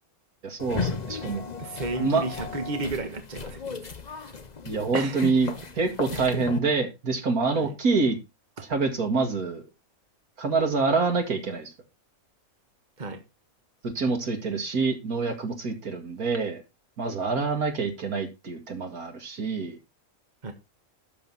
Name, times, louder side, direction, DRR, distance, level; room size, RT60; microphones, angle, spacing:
voice 1, 0.4-1.5 2.0-2.2 4.6-5.5 5.8-8.2 8.7-9.6 10.4-11.7 13.8-16.6 17.0-19.7, right 4 dB, 85° right, 2.6 m, -26 dB
sound 1, 0.6-6.6, left 5 dB, 35° left, 1.0 m, -35 dB
voice 2, 1.6-4.4 4.9-5.7 6.1-6.4 7.5-7.7 13.0-13.2 20.4-20.5, right 3 dB, 30° right, 1.6 m, -33 dB
12.0 x 7.1 x 4.1 m
omnidirectional pair, 1.5 m